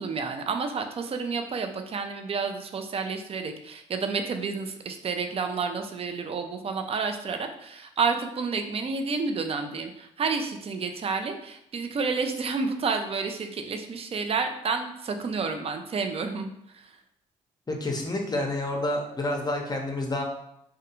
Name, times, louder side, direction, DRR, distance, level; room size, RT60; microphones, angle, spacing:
voice 1, 0.0-16.9, right 4 dB, 35° right, 6 dB, 0.4 m, -30 dB
voice 2, 17.7-20.2, left 1 dB, 25° left, 1 dB, 0.7 m, -29 dB
2.3 x 2.2 x 2.9 m, 0.77 s
hypercardioid pair, 50°, 17 cm